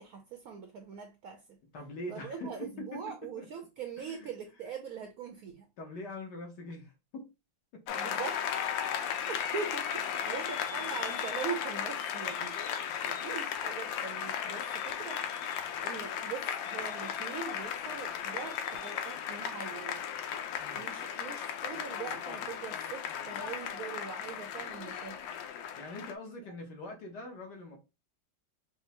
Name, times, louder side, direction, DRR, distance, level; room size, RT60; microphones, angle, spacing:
voice 1, 0.0-1.6 2.1-5.7 7.9-8.4 9.3-12.6 13.0-15.3 15.8-20.1 20.7-25.3, right 6 dB, 75° right, 0.8 m, -42 dB
voice 2, 1.7-3.5 4.1-4.3 5.8-7.3 7.7-8.1 20.6-20.9 25.8-27.8, left 1 dB, 65° left, 1.5 m, -43 dB
Applause, 7.9-26.1, left 8 dB, 80° left, 1.3 m, -36 dB
5.2 x 2.1 x 2.8 m
omnidirectional pair, 2.1 m